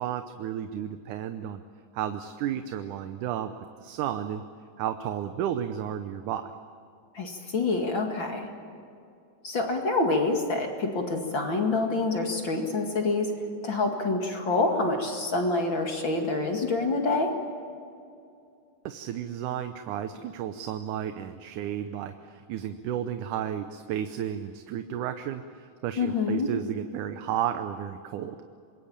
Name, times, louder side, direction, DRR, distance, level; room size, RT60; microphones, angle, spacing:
voice 1, 0.0-1.6 1.9-3.5 3.8-4.4 4.8-6.5 18.9-28.4, right 10 dB, 75° right, 8 dB, 2.3 m, -32 dB
voice 2, 7.1-8.5 9.4-13.3 13.6-17.4 26.0-26.5, left 3 dB, 40° left, 2 dB, 2.6 m, -27 dB
26.0 x 21.5 x 8.8 m, 2.5 s
omnidirectional pair, 3.7 m